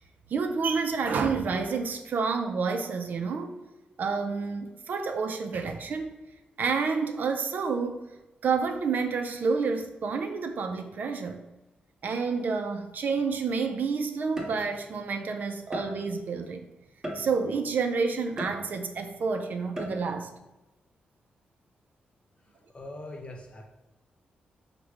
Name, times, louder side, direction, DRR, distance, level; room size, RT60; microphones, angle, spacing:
voice 1, 0.3-3.5 4.0-6.1 6.6-8.0 8.4-11.4 12.0-16.6 17.1-20.3, right 5 dB, 60° right, 6 dB, 0.4 m, -29 dB
sound 1, 13.1-13.4 14.4-15.0 15.7-16.3 17.0-17.7 18.4-19.1 19.8-20.3, equal, 15° right, 0.9 m, -38 dB
voice 2, 22.4-23.7, left 2 dB, 35° left, 3 dB, 0.8 m, -43 dB
4.9 x 2.1 x 4.5 m, 1.0 s
cardioid pair, 90°, 3 cm